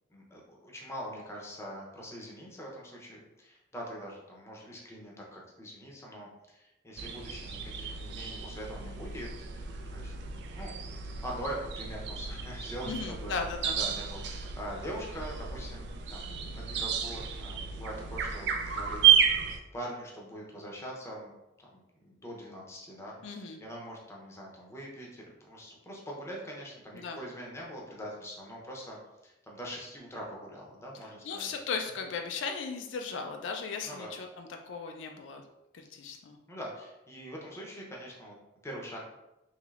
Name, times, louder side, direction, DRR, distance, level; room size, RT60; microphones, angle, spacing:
voice 1, 0.1-10.7 11.0-13.3 13.7-19.0 19.7-21.3 21.6-31.5 33.8-34.1 36.5-38.3 38.6-39.1, equal, 15° left, -2 dB, 0.6 m, -43 dB
sound 1, 7.0-19.6, right 8 dB, 65° right, 0.3 m, -31 dB
voice 2, 12.8-13.8 23.2-23.6 26.9-27.2 31.2-35.4 35.7-36.4, left 5 dB, 75° left, 4 dB, 0.3 m, -37 dB
3.1 x 3.0 x 2.4 m, 0.93 s
head